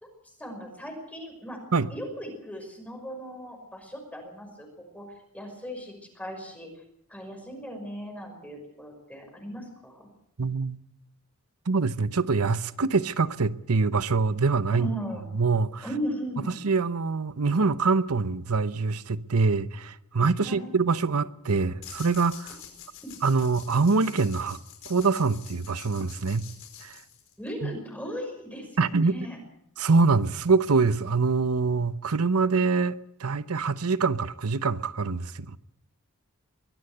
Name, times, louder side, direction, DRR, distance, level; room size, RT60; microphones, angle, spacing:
voice 1, 0.4-1.6 1.9-4.7 4.9-5.1 5.3-6.7 7.1-10.1 14.7-15.2 15.8-16.6 20.4-20.7 23.0-23.1 27.4-29.4, equal, 5° left, 5.6 m, -37 dB
voice 2, 10.4-10.8 11.7-14.9 15.3-15.8 16.6-22.6 23.2-24.6 24.9-26.5 26.8-27.0 27.6-27.8 28.8-29.3 29.8-35.6, right 4 dB, 85° right, 0.9 m, -24 dB
Piggy bank with coins, 21.8-27.5, left 9 dB, 65° left, 4.8 m, -47 dB
23.0 x 15.5 x 7.9 m
head